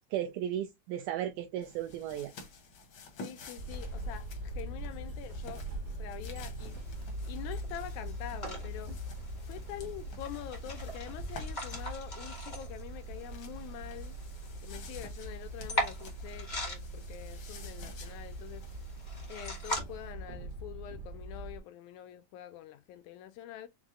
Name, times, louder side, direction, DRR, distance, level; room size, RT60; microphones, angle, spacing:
voice 1, 0.1-2.3, right 11 dB, 80° right, 2.0 m, -35 dB
sound 1, 1.6-12.0 13.0-20.1, left 3 dB, 65° left, 1.2 m, -52 dB
voice 2, 3.2-6.8 7.3-8.9 9.4-14.2 14.6-18.6 19.3-23.7, left 12 dB, 80° left, 1.8 m, -45 dB
sound 2, 3.6-21.6, right 1 dB, 60° right, 1.5 m, -42 dB
sound 3, 6.6-19.8, equal, 30° left, 0.8 m, -42 dB
6.1 x 2.1 x 3.6 m
omnidirectional pair, 3.7 m